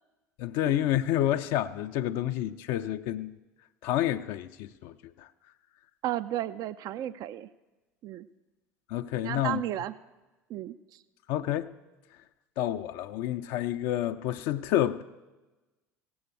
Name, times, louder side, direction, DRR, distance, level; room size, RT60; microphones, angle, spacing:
voice 1, 0.4-3.3 3.8-5.3 8.9-9.6 11.3-11.7 12.6-15.0, left 12 dB, 60° left, 0.4 m, -29 dB
voice 2, 6.0-7.5 8.0-8.3 9.2-9.9 10.5-10.7, right 13 dB, 50° right, 0.4 m, -33 dB
16.5 x 7.8 x 6.8 m
figure-of-eight pair, 65°, 8 cm